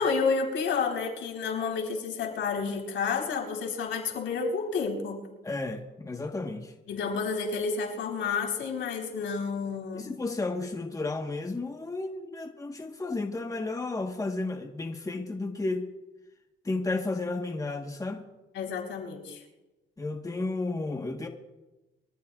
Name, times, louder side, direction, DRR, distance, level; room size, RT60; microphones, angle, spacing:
voice 1, 0.0-5.2 6.9-10.1 18.5-19.4, left 5 dB, 80° left, 4.0 m, -30 dB
voice 2, 5.4-6.7 9.9-15.9 16.6-18.2 20.0-21.3, left 3 dB, 15° left, 1.3 m, -32 dB
24.0 x 14.5 x 2.4 m
cardioid pair, 90°, 20 cm